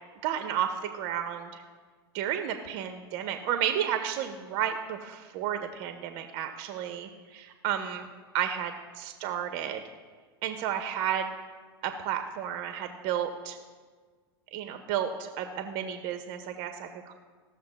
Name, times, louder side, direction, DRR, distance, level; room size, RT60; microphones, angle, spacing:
voice 1, 0.2-1.6 2.1-8.1 8.3-9.8 10.4-11.3 11.8-13.6 14.5-17.1, right 9 dB, 50° right, 6 dB, 0.8 m, -32 dB
16.0 x 6.5 x 2.2 m, 1.5 s
hypercardioid pair, 90°, 13 cm